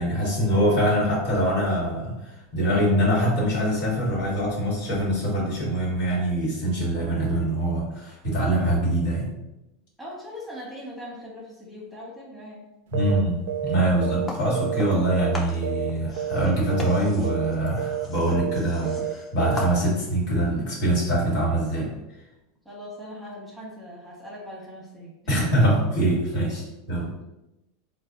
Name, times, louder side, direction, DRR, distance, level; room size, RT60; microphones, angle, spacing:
voice 1, 0.0-9.3 12.9-21.9 25.3-27.1, right 1 dB, 70° left, -5 dB, 1.5 m, -24 dB
voice 2, 10.0-12.6 22.6-25.1 25.6-25.7 27.0-27.3, equal, 5° right, -5 dB, 1.1 m, -40 dB
sound 1, 12.9-13.2 13.5-13.7 14.0-15.4 15.6-16.4 16.7-17.0 17.2-17.5 17.8-18.1 18.3-18.6 18.8-19.1 19.4-19.7, right 10 dB, 80° right, 0.3 m, -29 dB
sound 2, 14.3-15.1 15.3-20.2, left 2 dB, 20° left, 0.7 m, -39 dB
4.0 x 2.2 x 2.5 m, 0.94 s
supercardioid pair, 110°, 0 cm